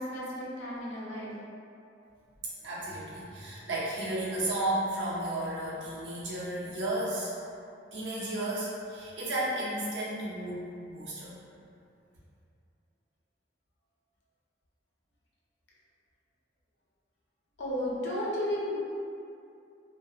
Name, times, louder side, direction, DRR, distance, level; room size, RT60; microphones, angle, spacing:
voice 1, 0.0-1.3 17.6-18.9, left 1 dB, 85° left, -6 dB, 0.7 m, -33 dB
voice 2, 2.6-7.3 7.9-11.4, right 1 dB, 85° right, -7 dB, 0.7 m, -33 dB
2.4 x 2.2 x 2.7 m, 2.5 s
head